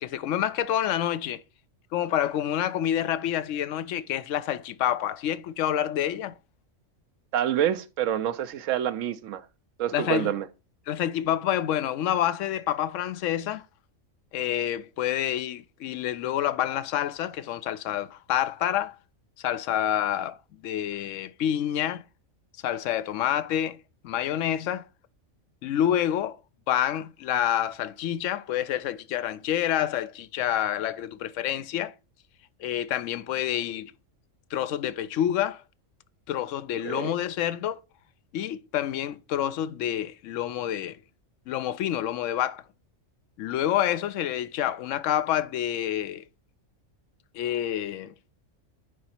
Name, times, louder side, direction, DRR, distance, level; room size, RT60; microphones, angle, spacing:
voice 1, 0.0-1.4 1.9-6.3 9.9-10.3 10.9-13.6 14.3-19.0 19.4-20.4 20.6-22.0 22.6-23.8 24.0-24.9 25.6-26.4 26.7-31.9 32.6-33.9 34.5-35.6 36.3-37.8 38.3-41.0 41.5-42.6 43.4-46.2 47.3-48.1, left 11 dB, 75° left, 0.9 m, -28 dB
voice 2, 7.3-9.4 9.8-10.5 36.8-37.1, right 10 dB, 75° right, 1.0 m, -27 dB
9.6 x 4.0 x 4.4 m
omnidirectional pair, 1.3 m